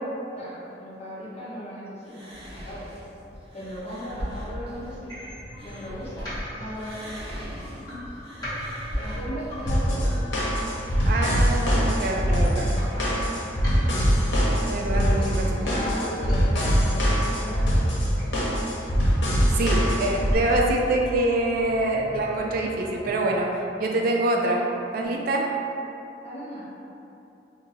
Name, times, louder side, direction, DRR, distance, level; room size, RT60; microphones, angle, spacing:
voice 1, 0.4-2.8 3.5-5.3 5.6-7.7 8.9-10.0 12.9-13.2 13.7-14.0 15.6-17.8 26.2-26.7, equal, 35° left, -8 dB, 0.9 m, -37 dB
sound 1, 2.0-6.4 6.7-11.2, equal, 35° right, 0.7 m, -38 dB
sound 2, 5.1-23.1, equal, 20° left, 1.3 m, -40 dB
sound 3, 9.7-20.3, equal, 85° left, 0.8 m, -23 dB
voice 2, 11.1-12.7 14.6-15.5 19.5-24.6 24.9-25.5, right 2 dB, 55° right, 0 dB, 0.4 m, -25 dB
2.6 x 2.6 x 4.1 m, 2.8 s
head